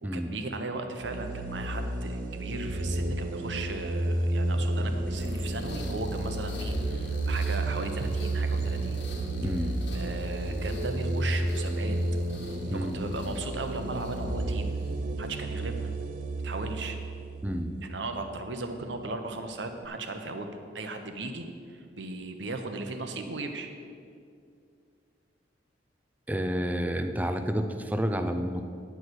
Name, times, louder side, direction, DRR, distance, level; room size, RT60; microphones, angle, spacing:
voice 1, 0.0-9.0 9.4-12.0 12.7-14.7 15.2-15.9 16.4-17.0 17.8-23.7, right 2 dB, 80° right, 6 dB, 0.9 m, -37 dB
sound 1, 1.0-18.4, right 2 dB, 50° right, 0.6 m, -31 dB
sound 2, 5.0-15.0, left 1 dB, 70° left, 1.4 m, -44 dB
voice 2, 9.4-9.7 12.7-13.0 17.4-17.7 26.3-28.6, equal, 10° right, 7 dB, 0.5 m, -30 dB
10.0 x 4.8 x 8.0 m, 2.3 s
head